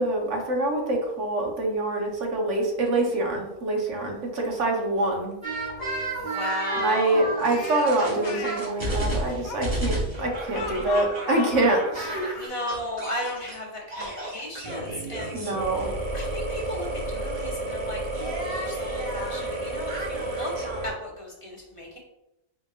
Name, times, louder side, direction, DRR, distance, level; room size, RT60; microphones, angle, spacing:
voice 1, 0.0-5.3 6.8-12.3 15.3-15.9, right 2 dB, 55° right, 0 dB, 1.2 m, -25 dB
sound 1, 5.4-13.6 13.9-20.9, right 2 dB, 30° right, 1.4 m, -31 dB
voice 2, 6.2-7.4 12.3-15.5 16.1-20.5 20.8-22.0, left 1 dB, 25° left, -3 dB, 0.9 m, -35 dB
Speech, 7.5-8.6 9.4-12.5, left 5 dB, 75° left, 1.1 m, -36 dB
4.9 x 4.4 x 2.4 m, 0.93 s
omnidirectional pair, 1.6 m